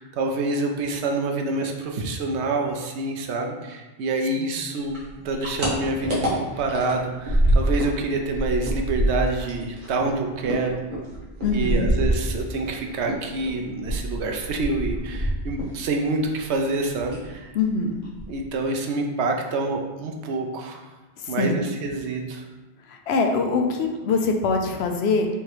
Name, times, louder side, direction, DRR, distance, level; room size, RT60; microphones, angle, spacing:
voice 1, 0.0-10.8 11.5-17.5 18.3-20.8 21.3-22.4, right 3 dB, 90° right, 2 dB, 0.9 m, -27 dB
Eating Chocolate, 4.9-12.7 13.0-16.8 17.1-17.3 17.6-17.7 18.0-18.6, right 1 dB, 50° right, 1.2 m, -26 dB
voice 2, 11.4-11.9 17.5-18.0 21.2-21.6 22.9-25.3, left 4 dB, 75° left, 3 dB, 0.8 m, -23 dB
3.4 x 3.0 x 4.7 m, 1.2 s
omnidirectional pair, 1.1 m